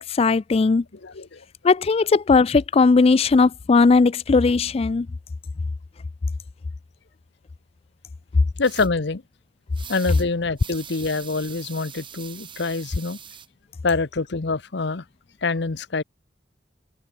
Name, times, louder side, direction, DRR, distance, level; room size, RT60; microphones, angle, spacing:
voice 1, 0.0-0.8 1.6-5.1, left 4 dB, 35° left, 0.4 m, -18 dB
voice 2, 1.0-1.4 8.6-9.2 9.9-13.2 13.8-15.0 15.4-16.0, left 3 dB, 65° left, 0.9 m, -25 dB
sound 1, 8.6-8.9 9.7-10.3 10.6-13.5, right 8 dB, 30° right, 1.5 m, -42 dB
head